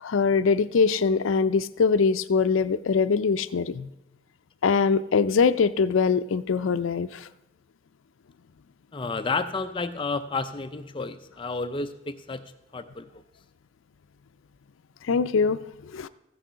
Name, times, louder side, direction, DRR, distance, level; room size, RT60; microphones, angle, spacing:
voice 1, 0.0-3.9 4.6-7.3 15.1-15.6 15.9-16.1, left 5 dB, 80° left, 13 dB, 0.4 m, -23 dB
voice 2, 8.9-12.4 12.7-13.2, left 3 dB, 25° left, 10 dB, 0.4 m, -31 dB
14.5 x 6.4 x 5.6 m, 0.96 s
head